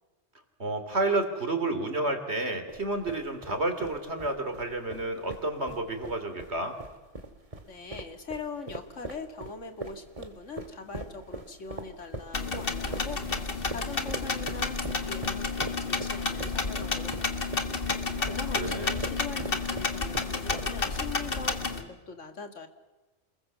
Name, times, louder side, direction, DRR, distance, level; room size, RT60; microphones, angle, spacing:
voice 1, 0.6-6.8 18.2-19.0, right 2 dB, 60° right, 7 dB, 3.4 m, -31 dB
sound 1, 2.7-21.0, right 2 dB, 30° right, 2.0 m, -42 dB
voice 2, 7.6-17.6 18.3-22.7, left 4 dB, 75° left, 7 dB, 2.4 m, -42 dB
sound 2, 12.3-21.8, left 4 dB, 50° left, 2.0 m, -31 dB
28.0 x 21.0 x 7.3 m, 1.2 s
omnidirectional pair, 1.3 m